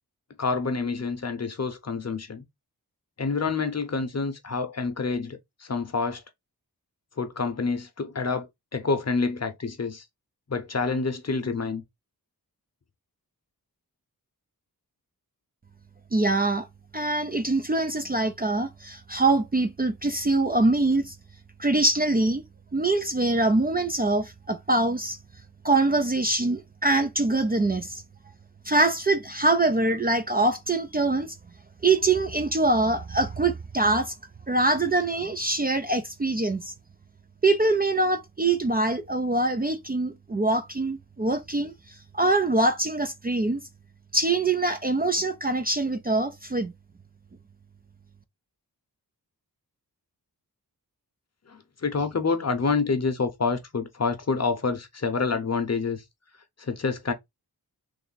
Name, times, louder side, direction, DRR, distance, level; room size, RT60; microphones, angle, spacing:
voice 1, 0.4-2.4 3.2-6.2 7.2-10.0 10.5-11.8 51.5-56.0 56.6-57.1, left 4 dB, 45° left, 0.8 m, -28 dB
voice 2, 16.1-16.7 16.9-21.1 21.6-22.4 22.7-25.2 25.6-28.0 28.6-31.4 31.8-34.1 34.5-36.7 37.4-43.6 44.1-46.7, right 2 dB, 25° right, 0.4 m, -24 dB
3.4 x 2.5 x 3.9 m
wide cardioid pair, 90°, 38 cm